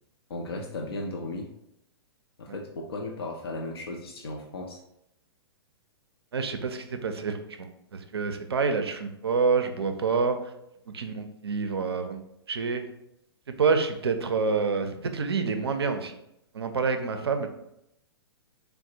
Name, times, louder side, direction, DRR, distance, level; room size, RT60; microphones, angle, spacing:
voice 1, 0.3-1.5 2.4-4.8, left 2 dB, 65° left, 1 dB, 0.4 m, -35 dB
voice 2, 6.3-7.7 8.1-10.4 10.9-12.2 12.5-12.8 13.6-16.2 16.5-17.5, right 5 dB, 70° right, 7 dB, 0.4 m, -27 dB
3.9 x 2.0 x 2.7 m, 0.80 s
figure-of-eight pair, 110°, 14 cm